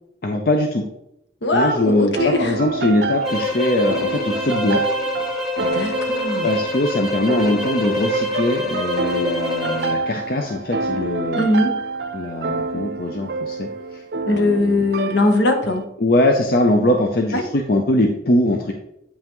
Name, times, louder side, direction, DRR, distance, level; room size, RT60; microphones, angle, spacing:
voice 1, 0.2-0.8 1.5-4.8 6.4-11.5 12.1-14.8 16.0-18.7, left 1 dB, 55° left, 3 dB, 0.6 m, -21 dB
voice 2, 1.4-2.6 5.6-6.5 11.4-11.8 14.3-15.9 17.3-17.4, left 2 dB, 75° left, 4 dB, 1.0 m, -20 dB
sound 1, 2.2-15.8, right 3 dB, 60° right, 0.5 m, -28 dB
sound 2, 3.2-10.0, left 2 dB, ahead, 1.1 m, -26 dB
8.4 x 5.5 x 3.1 m, 0.82 s
head